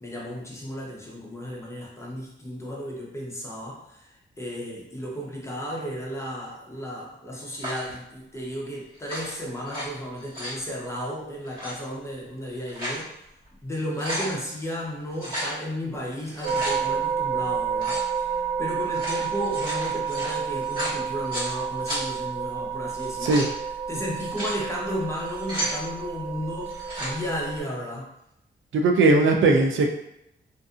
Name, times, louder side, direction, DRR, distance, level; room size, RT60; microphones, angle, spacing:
voice 1, 0.0-13.2 13.6-23.5 23.9-28.2, equal, 15° left, -4 dB, 0.7 m, -34 dB
sound 1, 7.6-7.9 8.9-9.8 10.2-10.6 11.4-11.7 12.4-13.0 13.5-13.6 13.8-14.3 15.2-15.5 16.2-16.8 17.8-18.1 18.8-21.5 21.9-22.0 22.9-23.5 24.1-24.6 25.2-25.8 26.7-27.1, equal, 45° right, 1.5 m, -33 dB
sound 2, 16.4-27.6, right 7 dB, 5° right, 1.2 m, -30 dB
voice 2, 28.7-29.9, right 3 dB, 85° right, 2 dB, 0.4 m, -19 dB
2.5 x 2.4 x 2.4 m, 0.82 s
wide cardioid pair, 110°, 20 cm